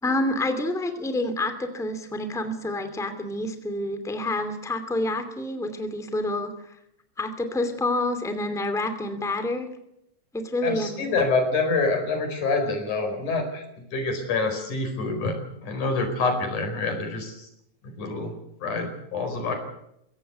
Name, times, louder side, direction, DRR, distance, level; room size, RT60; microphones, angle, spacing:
voice 1, 0.0-6.5 7.2-9.7 10.3-11.1, left 1 dB, ahead, 8 dB, 2.1 m, -28 dB
voice 2, 10.6-13.6 13.9-15.3 15.6-17.5 18.0-18.3 18.6-19.5, left 3 dB, 90° left, 6 dB, 6.2 m, -26 dB
22.5 x 17.0 x 8.0 m, 0.81 s
omnidirectional pair, 3.4 m